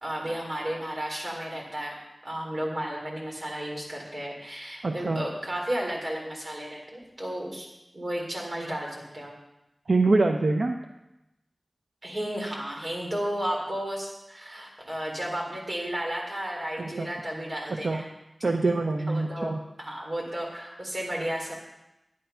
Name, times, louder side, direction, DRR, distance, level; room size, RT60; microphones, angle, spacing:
voice 1, 0.0-2.0 2.2-7.7 7.9-9.3 12.0-18.1 18.6-18.7 19.1-19.5 19.8-21.5, equal, 50° right, -1 dB, 3.8 m, -33 dB
voice 2, 4.8-5.2 9.9-10.7 17.0-17.1 17.7-18.0 18.4-19.6, right 3 dB, 80° right, 4 dB, 0.7 m, -24 dB
10.5 x 10.0 x 5.6 m, 0.93 s
wide cardioid pair, 60°, 0 cm